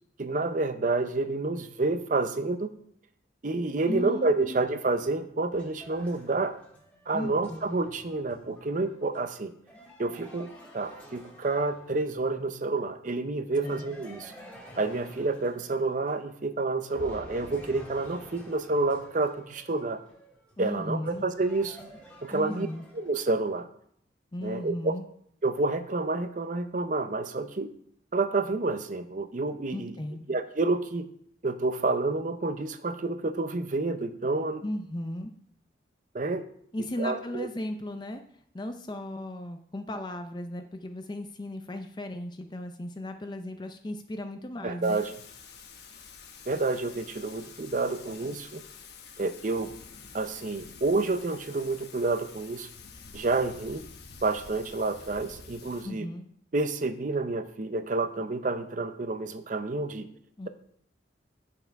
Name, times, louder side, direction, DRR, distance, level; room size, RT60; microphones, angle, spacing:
voice 1, 0.2-2.7 3.4-6.5 7.1-9.5 10.0-10.5 10.7-14.3 14.8-20.0 20.6-21.8 22.2-22.7 22.9-23.7 24.4-24.9 25.4-27.7 28.1-29.9 30.3-31.1 31.4-34.6 36.1-36.4 37.0-37.5 44.6-45.1 46.5-48.6 49.2-49.7 50.1-52.7 53.1-53.8 54.2-56.1 56.5-60.1, right 3 dB, 45° right, 10 dB, 0.6 m, -29 dB
voice 2, 3.9-4.6 7.1-7.6 13.6-13.8 20.6-21.2 22.3-22.8 24.3-25.0 29.7-30.3 34.6-35.3 36.7-38.2 38.5-45.0 55.8-56.3 60.4-60.5, left 1 dB, 25° left, 7 dB, 0.5 m, -36 dB
sound 1, 4.9-12.3 13.6-16.5 16.9-23.4, equal, 10° left, 1.8 m, -50 dB
Thunder / Rain, 44.8-55.8, left 5 dB, 60° left, 1.0 m, -48 dB
9.5 x 5.6 x 4.6 m, 0.67 s
head